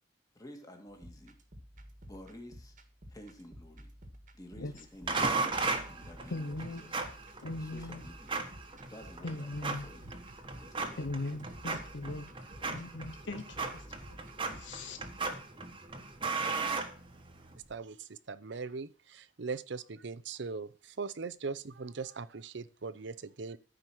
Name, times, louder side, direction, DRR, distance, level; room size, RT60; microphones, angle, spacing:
voice 1, 0.3-1.4 2.1-2.7 3.1-3.9 4.3-5.6 5.9-7.1 7.6-8.3 8.9-10.1 10.6-11.1, left 1 dB, 20° left, 3 dB, 2.2 m, -51 dB
sound 1, 0.9-15.3, equal, 40° right, 1.6 m, -53 dB
sound 2, 5.1-17.6, right 3 dB, 25° right, 1.3 m, -37 dB
voice 2, 6.3-7.0 7.4-8.0 9.2-9.8 11.0-12.3 12.7-13.8 14.5-15.0, left 2 dB, 65° left, 8 dB, 0.9 m, -39 dB
voice 3, 17.7-23.6, right 4 dB, 65° right, 15 dB, 0.7 m, -40 dB
14.0 x 5.2 x 6.1 m, 0.38 s
head